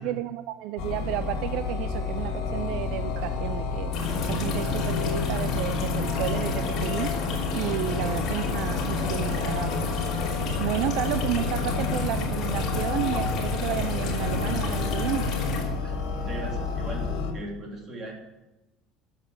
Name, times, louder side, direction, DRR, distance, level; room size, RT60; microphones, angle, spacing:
voice 1, 0.0-3.9 4.2-7.1 7.5-9.8 10.6-15.3, right 14 dB, 60° right, 12 dB, 0.4 m, -32 dB
sound 1, 0.8-17.3, left 4 dB, 65° left, 2.7 m, -30 dB
sound 2, 3.9-15.6, left 3 dB, 40° left, 3.1 m, -31 dB
voice 2, 15.8-18.1, right 1 dB, 25° right, -1 dB, 3.0 m, -38 dB
13.5 x 7.3 x 7.7 m, 1.0 s
cardioid pair, 170°, 0 cm